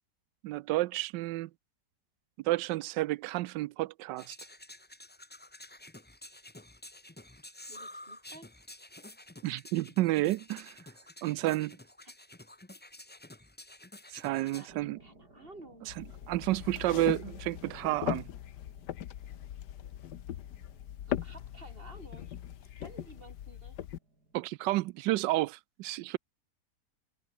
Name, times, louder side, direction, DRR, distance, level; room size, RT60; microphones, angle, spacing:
voice 1, 0.4-1.5 2.4-4.4 9.4-10.8 11.2-11.8 14.1-15.0 16.0-18.3 24.3-26.2, right 17 dB, 90° right, 1.2 m, -31 dB
sound 1, 4.2-14.7, left 1 dB, 10° left, 0.5 m, -50 dB
voice 2, 7.7-8.5 12.0-12.1 14.4-16.0 21.1-22.3 22.6-23.8, right 2 dB, 30° right, 3.4 m, -53 dB
sound 2, 14.6-24.6, right 2 dB, 65° right, 7.8 m, -61 dB
sound 3, 15.9-24.0, left 11 dB, 75° left, 1.5 m, -40 dB
omnidirectional pair, 1.9 m